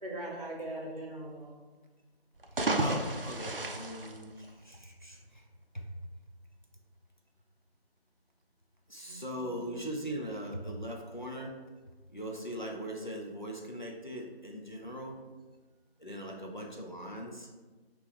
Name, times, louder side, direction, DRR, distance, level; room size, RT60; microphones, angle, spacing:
voice 1, 0.0-1.5 9.0-9.6, right 1 dB, 40° right, -3 dB, 0.8 m, -41 dB
sound 1, 2.3-5.0, right 2 dB, 60° right, 0.4 m, -33 dB
voice 2, 2.5-5.5 5.7-5.9 8.9-11.5 12.1-15.1 16.0-17.5, equal, 50° left, 0 dB, 0.5 m, -40 dB
4.0 x 2.9 x 3.5 m, 1.3 s
figure-of-eight pair, 180°, 32 cm